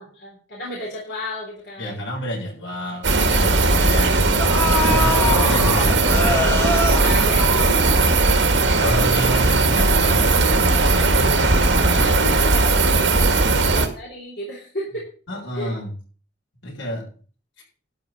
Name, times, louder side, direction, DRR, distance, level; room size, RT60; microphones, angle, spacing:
voice 1, 0.0-2.1 4.7-5.0 7.0-8.8 9.2-9.4 11.3-15.1 15.5-15.8, left 1 dB, 60° left, -3 dB, 3.7 m, -34 dB
voice 2, 1.8-4.2 4.8-6.4 8.8-12.3 15.3-15.9 16.6-17.1, equal, 85° left, -1 dB, 7.0 m, -30 dB
sound 1, 2.2-2.3 2.7-2.9 3.9-4.0 4.4-8.3 8.6-8.7, left 3 dB, 15° left, 1.8 m, -25 dB
sound 2, 3.0-13.9, right 3 dB, 75° right, 2.0 m, -18 dB
12.5 x 5.8 x 7.4 m, 0.40 s
head